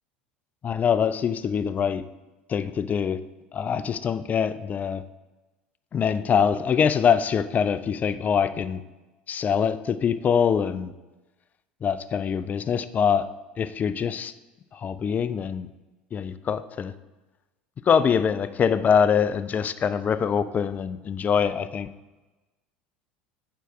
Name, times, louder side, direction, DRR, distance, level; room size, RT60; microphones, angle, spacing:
voice 1, 0.6-2.0 2.5-3.2 3.5-5.0 5.9-8.8 9.3-10.9 11.8-13.3 13.6-14.3 14.7-15.7 16.1-16.9 17.9-21.9, left 7 dB, 30° left, 12 dB, 0.4 m, -24 dB
4.6 x 4.6 x 5.9 m, 1.1 s
hypercardioid pair, 80°, 5 cm